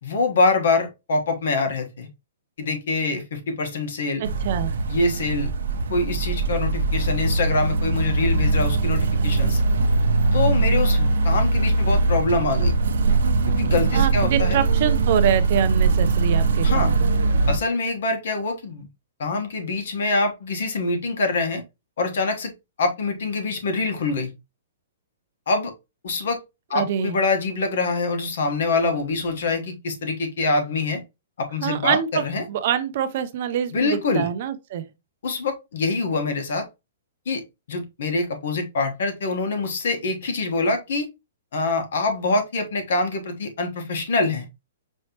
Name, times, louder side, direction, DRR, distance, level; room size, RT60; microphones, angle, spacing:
voice 1, 0.0-2.1 2.6-4.2 4.9-5.5 5.9-9.6 10.3-12.8 13.6-14.6 16.6-16.9 17.5-18.9 19.2-21.6 22.0-22.5 22.8-24.3 25.5-25.7 26.0-26.4 26.7-31.0 31.4-32.4 33.7-34.3 35.2-36.6 37.3-37.4 37.7-41.1 41.5-44.5, left 3 dB, 60° left, 1.3 m, -24 dB
voice 2, 4.2-4.7 13.9-17.1 26.7-27.2 31.6-34.8, right 9 dB, 35° right, 0.5 m, -25 dB
sound 1, 4.2-17.6, right 3 dB, 75° right, 0.7 m, -21 dB
5.4 x 3.1 x 2.9 m
hypercardioid pair, 175°, 0 cm